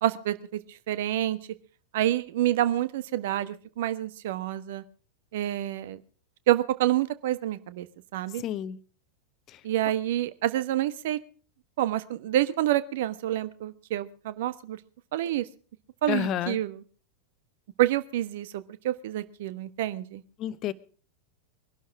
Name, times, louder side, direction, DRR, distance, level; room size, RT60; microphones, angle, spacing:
voice 1, 0.0-1.4 1.9-4.8 5.3-6.0 6.5-7.9 8.1-8.4 9.6-11.2 11.8-14.8 15.1-15.4 16.0-16.8 17.8-20.2, right 13 dB, 55° right, 1.3 m, -28 dB
voice 2, 8.4-8.8 9.5-9.6 16.1-16.6 20.4-20.7, left 11 dB, 35° left, 1.0 m, -30 dB
22.5 x 12.0 x 4.8 m
figure-of-eight pair, 90°, 0 cm